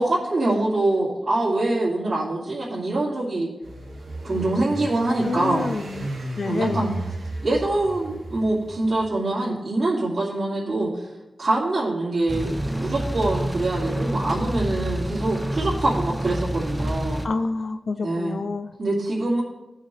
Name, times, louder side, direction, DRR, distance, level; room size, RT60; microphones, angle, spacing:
voice 1, 0.0-3.5 4.2-5.7 6.4-6.9 7.4-11.1 11.4-12.5 12.8-17.2 18.0-18.4 18.8-19.4, right 2 dB, 45° right, -11 dB, 2.5 m, -24 dB
sound 1, 3.6-9.1, right 1 dB, 90° right, 2.0 m, -34 dB
voice 2, 5.2-6.1 6.4-6.8 17.2-18.7, left 3 dB, 50° left, 10 dB, 0.4 m, -28 dB
sound 2, 12.3-17.3, right 1 dB, 5° right, 0.6 m, -28 dB
16.5 x 5.6 x 3.3 m, 1.0 s
wide cardioid pair, 135°, 0 cm